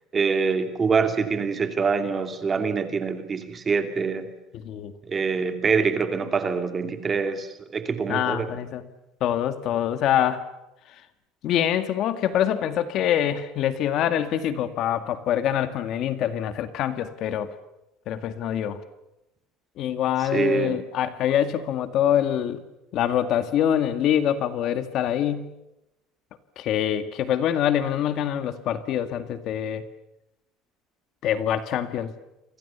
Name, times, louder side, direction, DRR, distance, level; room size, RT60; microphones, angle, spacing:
voice 1, 0.1-4.3 5.1-8.5 20.3-20.8, right 5 dB, 20° right, 8 dB, 2.5 m, -25 dB
voice 2, 8.1-8.8 9.2-10.5 11.4-17.5 18.1-18.8 19.8-22.6 22.9-25.5 26.6-29.8 31.2-32.1, left 10 dB, 40° left, 11 dB, 1.8 m, -25 dB
29.5 x 25.0 x 7.0 m, 0.90 s
cardioid pair, 180°, 0 cm